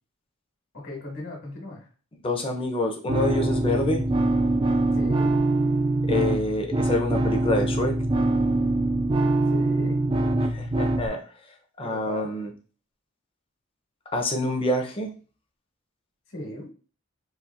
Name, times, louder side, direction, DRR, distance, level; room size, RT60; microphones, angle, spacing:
voice 1, 0.7-1.9 4.9-5.3 9.5-10.0 11.8-12.3 16.3-16.7, left 1 dB, 60° left, -3 dB, 1.4 m, -37 dB
voice 2, 2.2-4.0 6.1-7.9 10.4-11.2 11.8-12.5 14.1-15.1, left 1 dB, 25° left, 3 dB, 0.7 m, -27 dB
sound 1, 3.1-11.1, right 2 dB, 25° right, 0.3 m, -23 dB
4.2 x 2.5 x 2.5 m, 0.37 s
head